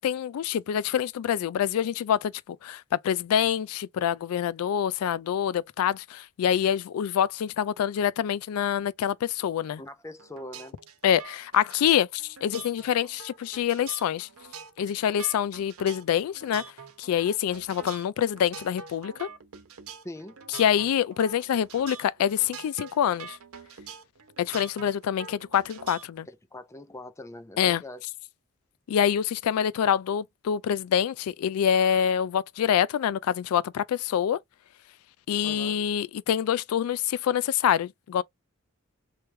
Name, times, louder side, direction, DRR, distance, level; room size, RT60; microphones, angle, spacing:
voice 1, 0.0-9.8 11.0-14.3 14.8-16.6 17.0-19.3 20.6-23.4 24.4-26.3 27.6-27.8 28.9-34.4 35.3-38.2, left 9 dB, 90° left, 0.3 m, -26 dB
voice 2, 9.8-10.8 20.0-20.4 26.3-28.0 35.4-35.8, left 1 dB, 15° left, 0.6 m, -42 dB
sound 1, 10.2-26.2, right 6 dB, 85° right, 0.9 m, -45 dB
3.2 x 3.1 x 3.2 m
head